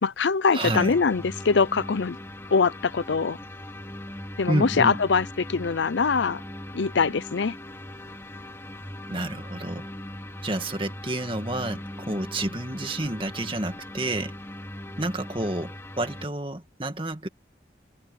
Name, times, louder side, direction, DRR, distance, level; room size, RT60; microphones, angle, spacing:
voice 1, 0.0-2.2 2.5-3.4 4.4-6.4 6.7-7.6, left 5 dB, 85° left, 0.6 m, -23 dB
voice 2, 0.5-0.9 4.5-5.0 9.1-9.9 10.4-14.3 15.0-17.3, right 1 dB, 30° right, 2.2 m, -29 dB
sound 1, 0.6-16.3, left 1 dB, 15° left, 2.5 m, -40 dB
head